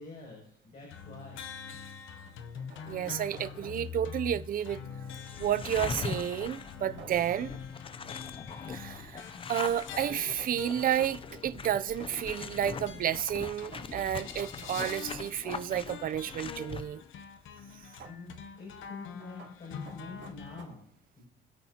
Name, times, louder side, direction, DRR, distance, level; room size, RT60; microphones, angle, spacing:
voice 1, 0.0-1.4 18.0-20.9 21.2-21.3, left 3 dB, 45° left, 6.6 m, -46 dB
sound 1, 0.7-0.8 2.1-4.1 7.0-7.5 10.1-12.2 13.7-16.1 18.0-18.3 19.2-20.6, right 6 dB, 70° right, 3.3 m, -52 dB
sound 2, 0.9-20.6, left 7 dB, 90° left, 0.8 m, -45 dB
voice 2, 2.9-4.8 5.4-7.6 8.7-9.2 9.5-17.0, right 10 dB, 45° right, 0.5 m, -31 dB
sound 3, 5.1-16.8, left 5 dB, 30° left, 0.5 m, -41 dB
25.5 x 8.5 x 2.8 m
cardioid pair, 150°, 20 cm